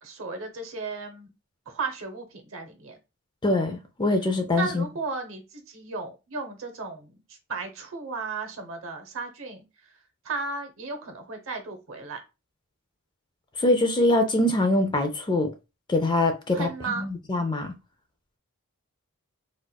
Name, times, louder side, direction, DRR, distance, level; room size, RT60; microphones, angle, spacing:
voice 1, 0.0-1.3 1.7-3.0 4.6-10.0 10.2-12.2 16.5-17.1, right 4 dB, 60° right, 0.8 m, -35 dB
voice 2, 3.4-4.8 13.6-15.5 15.9-16.7 17.0-17.7, left 2 dB, 20° left, 0.4 m, -23 dB
4.2 x 2.4 x 2.2 m
head